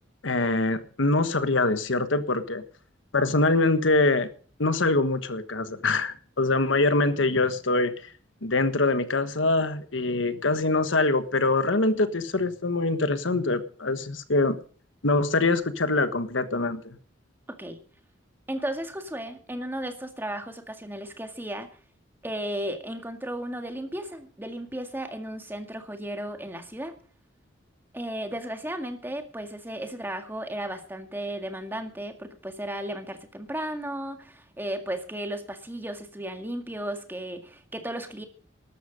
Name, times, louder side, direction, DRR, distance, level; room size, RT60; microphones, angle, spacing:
voice 1, 0.2-2.6 3.1-4.3 4.6-7.9 8.4-14.6 15.0-17.0, left 2 dB, 80° left, 1.3 m, -24 dB
voice 2, 18.5-21.7 22.2-26.9 27.9-38.2, right 1 dB, 10° right, 1.9 m, -34 dB
13.0 x 13.0 x 5.2 m
head